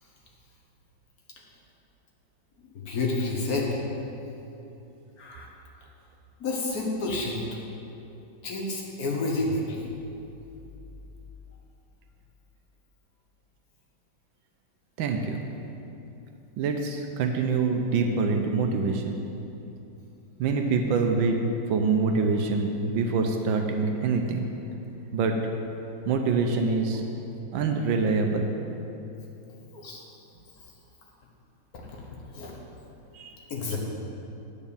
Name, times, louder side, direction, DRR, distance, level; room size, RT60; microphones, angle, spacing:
voice 1, 2.8-3.8 5.2-5.5 6.4-7.4 8.4-9.9 29.7-30.0 31.7-32.0 32.3-32.5 33.5-33.8, left 2 dB, 50° left, -2 dB, 1.7 m, -29 dB
voice 2, 15.0-15.4 16.6-19.2 20.4-21.4 21.7-24.5 25.1-25.4 26.1-27.0 27.5-28.5 33.1-33.3, right 4 dB, 80° right, 4 dB, 1.4 m, -25 dB
9.1 x 5.3 x 7.0 m, 2.8 s
omnidirectional pair, 2.1 m